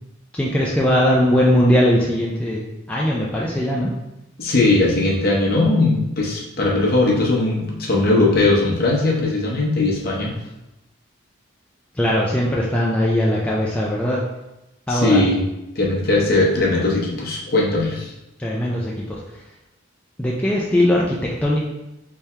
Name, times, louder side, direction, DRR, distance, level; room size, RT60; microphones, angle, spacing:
voice 1, 0.3-2.6 2.9-3.9 11.9-14.2 14.9-15.2 18.4-19.4 20.2-21.6, equal, 5° left, -5 dB, 0.3 m, -20 dB
voice 2, 4.4-10.3 14.9-15.4 15.8-18.1, left 2 dB, 50° left, -3 dB, 0.8 m, -19 dB
3.5 x 2.8 x 3.2 m, 0.94 s
head